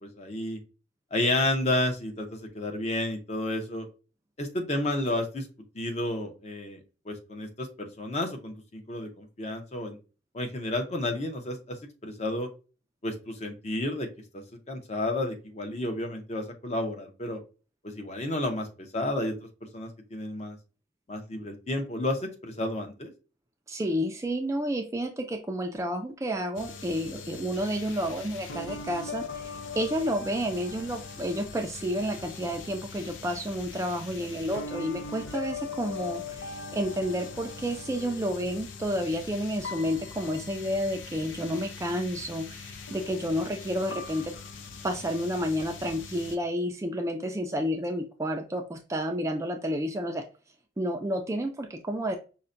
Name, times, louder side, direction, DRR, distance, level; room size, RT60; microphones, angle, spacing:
voice 1, 0.0-0.6 1.1-3.9 4.4-5.5 5.7-6.8 7.1-10.0 10.3-11.8 12.0-12.5 13.0-14.1 14.3-17.4 17.8-19.3 19.7-20.6 21.1-23.1, left 1 dB, 35° left, 4 dB, 0.6 m, -31 dB
voice 2, 23.7-44.3 44.8-50.2 50.8-52.2, equal, 15° right, 5 dB, 0.3 m, -30 dB
sound 1, 26.6-46.4, left 4 dB, 90° left, 0.5 m, -41 dB
5.5 x 2.1 x 2.5 m, 0.34 s
head